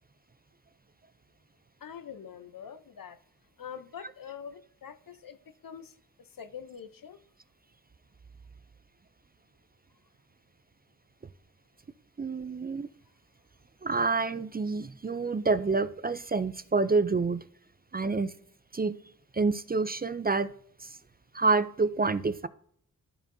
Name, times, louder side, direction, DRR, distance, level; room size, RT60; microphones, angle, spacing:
voice 1, 1.8-3.2 3.6-7.2, left 7 dB, 70° left, 0.7 m, -45 dB
voice 2, 12.2-12.9 13.8-17.4 17.9-18.3 18.7-19.0 19.3-20.5 20.8-21.0 21.3-22.5, right 4 dB, 25° right, 0.4 m, -28 dB
13.0 x 4.5 x 2.6 m
wide cardioid pair, 65°, 35 cm